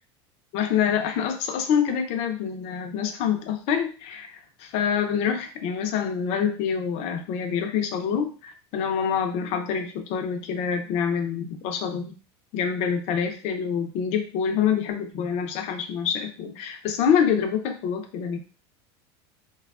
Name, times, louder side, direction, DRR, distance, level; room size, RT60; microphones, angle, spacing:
voice 1, 0.5-12.1 12.5-18.4, left 7 dB, 55° left, 6 dB, 0.6 m, -26 dB
3.2 x 2.3 x 2.3 m, 0.36 s
supercardioid pair, 135°, 14 cm